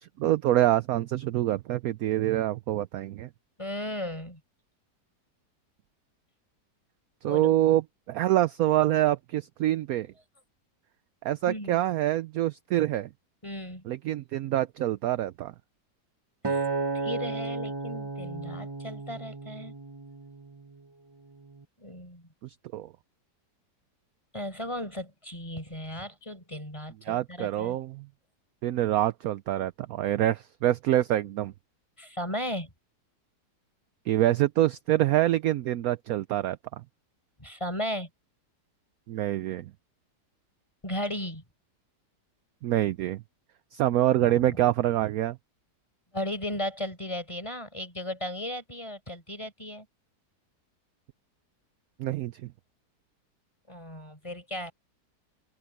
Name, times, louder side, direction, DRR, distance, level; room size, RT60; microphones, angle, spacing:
voice 1, 0.0-3.3 7.2-10.1 11.2-13.1 13.9-15.5 22.4-22.9 27.1-28.1 28.6-31.5 34.1-36.8 39.1-39.7 42.6-43.2 43.7-45.4 52.0-52.5, right 13 dB, 70° right, 0.9 m, -26 dB
voice 2, 3.6-4.4 7.2-7.5 11.5-11.8 13.4-13.8 16.4-16.6 16.9-19.7 21.8-22.3 24.3-27.8 32.0-32.7 37.4-38.1 40.8-41.4 44.2-44.7 46.1-49.9 53.7-54.7, left 1 dB, 15° left, 5.1 m, -36 dB
Acoustic guitar, 16.4-20.8 21.4-21.6, right 4 dB, 20° right, 0.7 m, -33 dB
omnidirectional pair, 1.8 m